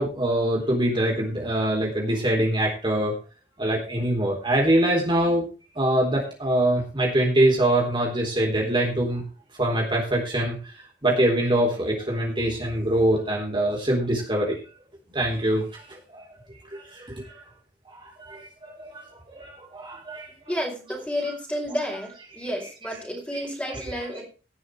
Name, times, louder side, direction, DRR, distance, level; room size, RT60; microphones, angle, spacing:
voice 1, 0.0-3.1 3.6-5.4 5.8-9.2 9.5-10.7 11.0-14.6 15.1-16.2 16.7-17.4 18.0-20.5, right 1 dB, 30° right, -1 dB, 3.7 m, -24 dB
voice 2, 20.5-24.2, equal, 10° left, -1 dB, 5.0 m, -31 dB
18.0 x 6.4 x 4.8 m, 0.34 s
head